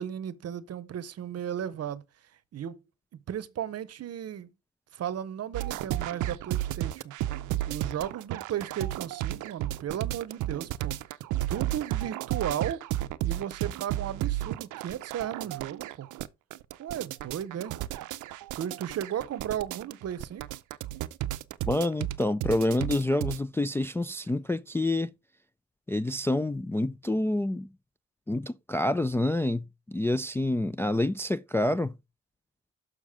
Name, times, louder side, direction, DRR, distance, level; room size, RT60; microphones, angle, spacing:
voice 1, 0.0-2.0 2.5-2.8 3.3-4.5 4.9-7.1 7.7-11.0 11.5-12.9 13.2-16.1 16.8-17.7 18.5-20.5, right 10 dB, 55° right, 0.8 m, -35 dB
sound 1, 5.5-23.4, right 14 dB, 85° right, 0.6 m, -33 dB
voice 2, 21.7-25.1 25.9-27.7 28.3-31.9, left 1 dB, 10° left, 0.3 m, -27 dB
6.6 x 6.2 x 3.6 m
cardioid pair, 90°, 30 cm